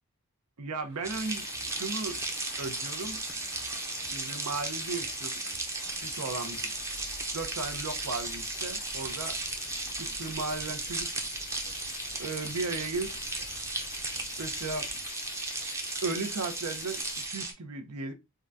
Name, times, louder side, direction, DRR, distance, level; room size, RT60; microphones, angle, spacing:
voice 1, 0.6-2.2 2.6-3.2 4.1-5.4 5.9-6.7 7.3-9.4 10.0-11.2 12.2-13.6 14.4-14.9 16.0-18.1, right 3 dB, 90° right, 0.7 m, -36 dB
sound 1, 0.8-15.1, equal, 60° right, 1.3 m, -53 dB
sound 2, 1.0-17.5, right 3 dB, 15° right, 0.5 m, -36 dB
sound 3, 1.1-17.3, left 9 dB, 40° left, 0.3 m, -46 dB
3.7 x 2.3 x 2.5 m
head